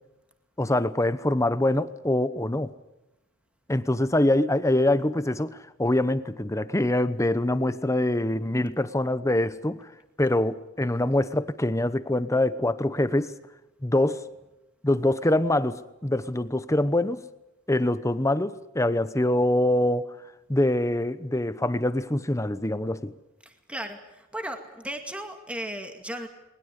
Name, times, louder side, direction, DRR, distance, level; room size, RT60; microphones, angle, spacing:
voice 1, 0.6-2.7 3.7-9.9 10.2-13.3 13.8-14.2 14.8-17.2 17.7-20.1 20.5-23.1, left 1 dB, 15° left, 13 dB, 0.9 m, -24 dB
voice 2, 23.5-26.3, right 1 dB, 5° right, 5 dB, 2.2 m, -36 dB
21.0 x 20.5 x 8.4 m, 0.96 s
head